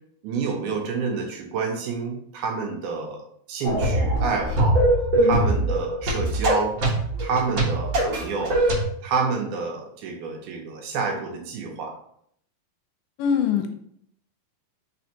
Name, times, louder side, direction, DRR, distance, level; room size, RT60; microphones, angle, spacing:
voice 1, 0.2-4.8 5.2-6.8 7.2-8.6 9.0-12.0, right 4 dB, 80° right, 2 dB, 2.0 m, -28 dB
sound 1, 3.6-8.8, right 1 dB, 60° right, 1.3 m, -22 dB
voice 2, 13.2-13.7, left 7 dB, 80° left, 6 dB, 2.0 m, -23 dB
4.2 x 4.2 x 2.8 m, 0.68 s
omnidirectional pair, 3.8 m